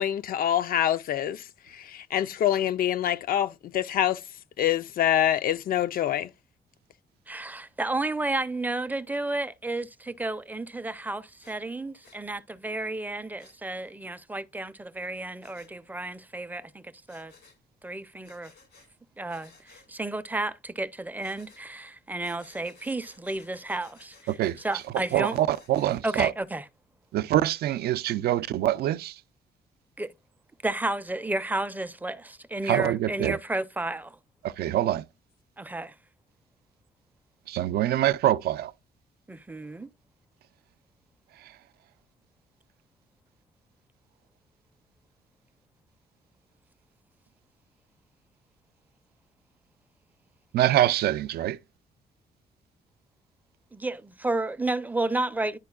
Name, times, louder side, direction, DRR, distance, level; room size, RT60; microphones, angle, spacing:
voice 1, 0.0-4.2 4.6-6.3, left 11 dB, 60° left, 0.4 m, -26 dB
voice 2, 7.3-17.3 17.8-18.5 19.2-24.2 24.6-25.4 26.0-26.6 30.0-30.1 30.6-34.2 35.6-35.9 39.3-39.9 53.7-55.6, right 2 dB, 10° right, 0.4 m, -32 dB
Breathing, 11.4-11.6 12.0-12.2 13.4-13.6 15.4-15.7 17.1-17.6 18.2-18.9 19.3-19.9 21.2-21.6 22.2-26.0, left 4 dB, 85° left, 1.9 m, -56 dB
voice 3, 24.3-24.6 25.1-26.3 27.1-29.2 32.6-33.4 34.4-35.1 37.5-38.7 41.4-41.6 50.5-51.6, right 13 dB, 80° right, 0.4 m, -25 dB
10.5 x 4.3 x 2.3 m
cardioid pair, 125°, 16 cm